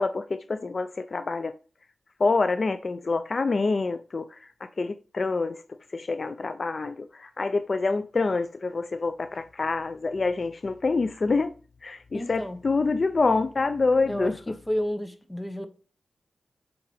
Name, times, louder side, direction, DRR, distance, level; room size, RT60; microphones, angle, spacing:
voice 1, 0.0-1.5 2.2-4.4 4.8-5.6 5.9-11.5 11.8-14.3, left 3 dB, 55° left, 0.4 m, -26 dB
voice 2, 12.1-12.6 14.1-15.7, equal, 15° left, 1.0 m, -31 dB
7.7 x 3.8 x 3.4 m
cardioid pair, 60°, 0 cm